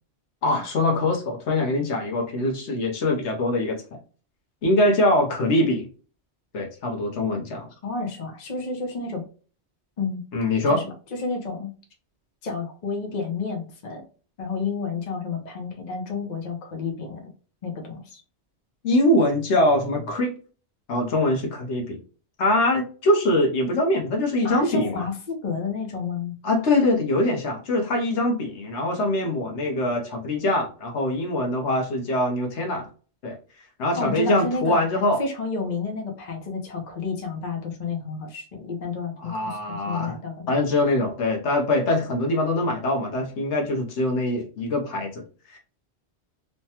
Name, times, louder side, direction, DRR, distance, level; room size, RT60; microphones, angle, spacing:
voice 1, 0.4-3.8 4.6-5.9 6.5-7.7 10.3-10.8 18.8-20.3 20.9-22.0 22.4-25.0 26.4-32.9 33.2-33.4 33.8-35.2 39.2-40.2 40.5-45.2 45.5-45.6, left 1 dB, 80° left, 2 dB, 1.1 m, -23 dB
voice 2, 7.8-9.2 10.0-10.2 10.7-10.9 11.2-11.7 12.4-14.0 14.4-17.2 17.6-18.2 24.4-26.3 34.0-34.8 35.2-40.5, left 4 dB, 45° left, 0 dB, 0.8 m, -30 dB
3.2 x 2.2 x 2.8 m, 0.40 s
omnidirectional pair, 1.2 m